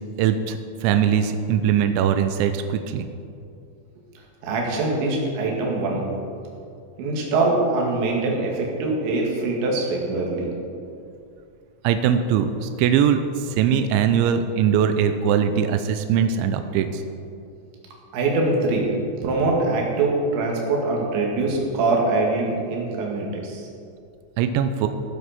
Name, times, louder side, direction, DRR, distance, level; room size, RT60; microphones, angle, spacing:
voice 1, 0.2-3.0 11.8-17.0 24.4-24.9, right 8 dB, 85° right, 8 dB, 2.7 m, -21 dB
voice 2, 4.4-6.0 7.0-10.5 18.1-18.9 19.2-23.6, right 2 dB, 65° right, -2 dB, 4.1 m, -23 dB
17.5 x 7.5 x 5.9 m, 2.5 s
omnidirectional pair, 5.9 m